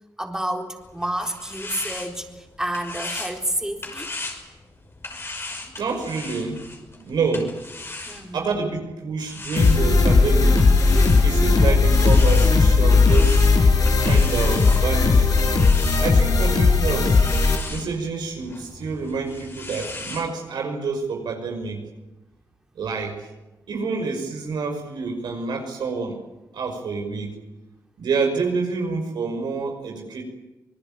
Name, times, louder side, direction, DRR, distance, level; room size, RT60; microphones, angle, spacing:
voice 1, 0.2-4.1 8.1-8.4 11.5-11.8 16.5-16.9, right 1 dB, 5° right, 2 dB, 3.9 m, -30 dB
sound 1, 0.8-8.6 9.2-20.3, left 2 dB, 35° left, 5.8 m, -38 dB
voice 2, 5.8-6.6 6.9-7.5 8.3-10.7 11.2-13.4 14.0-15.4 16.0-17.2 17.7-21.8 22.8-23.2 23.7-26.2 26.5-27.3 28.0-30.2, right 4 dB, 75° right, 3 dB, 5.7 m, -27 dB
sound 2, 9.6-17.6, left 4 dB, 55° left, 5.7 m, -17 dB
26.0 x 19.0 x 9.0 m, 1.1 s
cardioid pair, 60°, 7 cm